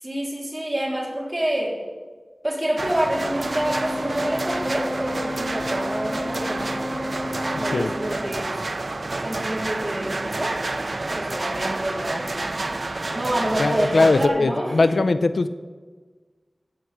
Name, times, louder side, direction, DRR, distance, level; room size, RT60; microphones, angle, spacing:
voice 1, 0.0-1.8 2.4-8.6 9.2-10.5 11.1-12.3 13.1-15.0, right 1 dB, 20° right, -3 dB, 3.5 m, -27 dB
sound 1, 2.8-14.3, right 2 dB, 60° right, 0.6 m, -29 dB
Organ, 3.3-8.4, left 1 dB, 5° right, 3.5 m, -32 dB
voice 2, 13.6-15.5, left 3 dB, 90° left, 12 dB, 0.5 m, -20 dB
14.5 x 5.9 x 7.9 m, 1.4 s
wide cardioid pair, 65°, 0 cm